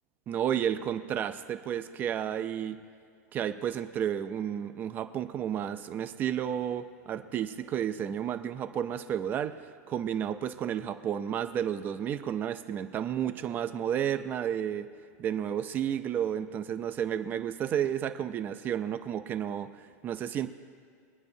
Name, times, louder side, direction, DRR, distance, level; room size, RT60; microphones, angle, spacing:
voice 1, 0.3-2.8 3.3-9.6 9.9-14.9 15.2-20.5, right 9 dB, 20° right, 10 dB, 0.4 m, -32 dB
23.0 x 9.6 x 2.7 m, 2.4 s
supercardioid pair, 160°, 9 cm